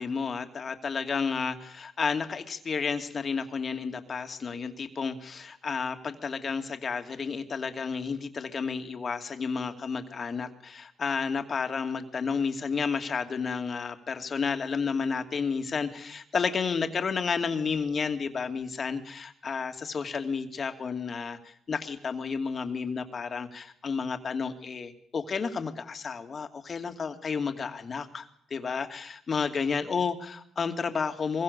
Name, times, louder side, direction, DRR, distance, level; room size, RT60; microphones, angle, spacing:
voice 1, 0.0-31.4, left 5 dB, 45° left, 7 dB, 2.6 m, -31 dB
23.5 x 23.0 x 7.0 m, 0.63 s
cardioid pair, 90°, 0 cm